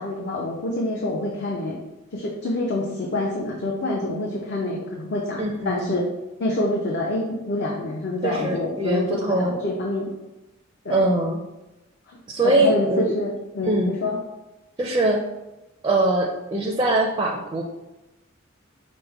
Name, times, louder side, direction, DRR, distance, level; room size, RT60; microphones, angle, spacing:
voice 1, 0.0-1.8 2.1-6.1 6.4-10.1 10.8-11.0 12.1-12.2 12.4-14.2, left 1 dB, 55° left, -2 dB, 0.6 m, -26 dB
voice 2, 5.4-6.0 8.2-9.6 10.9-11.4 12.3-13.1 13.6-13.9 14.8-15.2 15.8-17.6, right 2 dB, 20° right, 0 dB, 0.4 m, -22 dB
5.0 x 2.1 x 4.5 m, 0.99 s
head